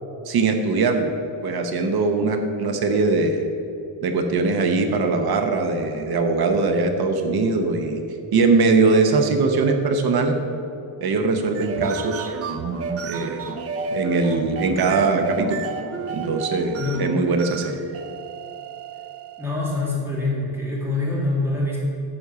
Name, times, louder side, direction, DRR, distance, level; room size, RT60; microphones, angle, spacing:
voice 1, 0.3-1.1 1.4-3.4 4.0-8.0 8.3-10.4 11.0-12.3 13.0-13.4 13.9-15.7 16.1-17.8, right 3 dB, 50° right, 6 dB, 0.9 m, -21 dB
sound 1, 11.4-19.7, right 4 dB, 30° right, 0.5 m, -32 dB
voice 2, 19.4-21.8, left 2 dB, 5° right, -6 dB, 2.0 m, -25 dB
9.7 x 6.0 x 6.8 m, 2.8 s
cardioid pair, 170°, 48 cm